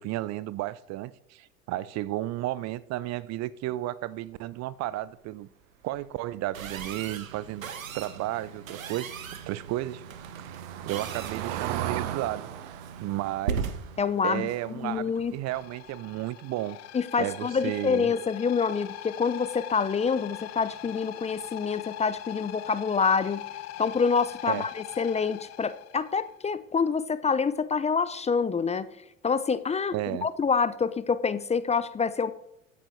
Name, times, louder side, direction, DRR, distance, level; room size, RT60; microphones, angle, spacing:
voice 1, 0.0-5.5 5.8-9.1 9.5-10.0 10.4-10.6 10.9-12.5 13.0-13.7 14.2-16.8 17.2-18.1 24.5-24.7 29.9-30.3, right 15 dB, 40° right, 0.6 m, -33 dB
sound 1, 6.5-15.7, right 6 dB, 85° right, 1.3 m, -39 dB
Car passing by / Engine, 8.4-15.3 15.6-15.9 16.2-16.3, right 11 dB, 65° right, 1.3 m, -38 dB
voice 2, 14.0-14.5 14.7-15.3 16.9-23.4 23.8-28.9 29.2-32.3, left 5 dB, 15° left, 0.6 m, -27 dB
sound 2, 15.5-26.3, left 14 dB, 40° left, 0.9 m, -42 dB
14.5 x 8.5 x 4.5 m
hypercardioid pair, 75°, 39 cm